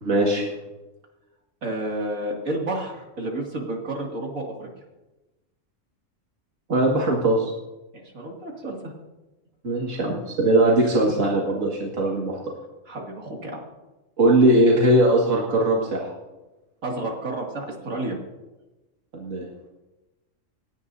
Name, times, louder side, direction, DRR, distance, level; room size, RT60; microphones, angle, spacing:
voice 1, 0.0-0.5 6.7-7.5 9.6-12.4 14.2-16.1 19.1-19.4, right 1 dB, 70° right, -2 dB, 2.4 m, -20 dB
voice 2, 1.6-4.7 7.9-8.9 10.6-10.8 12.9-13.6 16.8-18.2, right 1 dB, 90° right, -1 dB, 2.9 m, -31 dB
28.5 x 10.0 x 2.7 m, 1.1 s
omnidirectional pair, 1.4 m